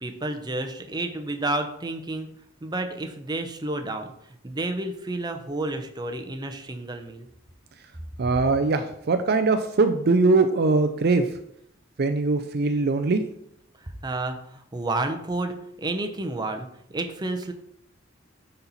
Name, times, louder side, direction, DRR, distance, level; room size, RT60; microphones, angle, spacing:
voice 1, 0.0-2.3 2.6-7.3 13.8-17.5, right 2 dB, 20° right, 5 dB, 0.7 m, -31 dB
voice 2, 8.2-11.3 12.0-13.2, right 3 dB, 50° right, 8 dB, 0.5 m, -21 dB
9.7 x 4.3 x 4.1 m, 0.73 s
head